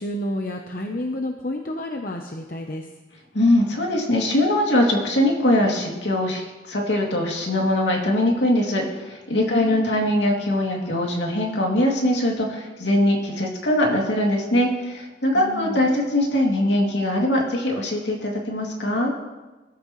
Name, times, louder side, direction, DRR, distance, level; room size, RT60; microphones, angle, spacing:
voice 1, 0.0-2.9 9.4-10.0 15.3-15.9, left 1 dB, 45° left, 3 dB, 0.9 m, -30 dB
voice 2, 3.3-19.1, left 1 dB, 70° left, -1 dB, 2.8 m, -22 dB
20.5 x 13.0 x 3.2 m, 1.2 s
head